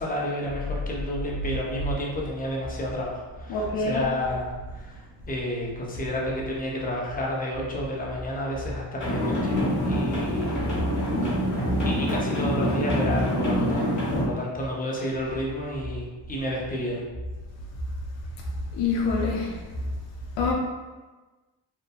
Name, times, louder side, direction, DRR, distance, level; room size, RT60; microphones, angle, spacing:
voice 1, 0.0-5.0 5.3-10.6 11.8-13.9 14.1-17.0, left 1 dB, 20° left, -3 dB, 0.6 m, -31 dB
voice 2, 3.5-4.0 18.7-19.6 20.4-20.5, left 4 dB, 85° left, -1 dB, 0.5 m, -25 dB
sound 1, 9.0-14.3, equal, 40° left, 1.0 m, -26 dB
2.8 x 2.1 x 2.3 m, 1.2 s
cardioid pair, 70°, 43 cm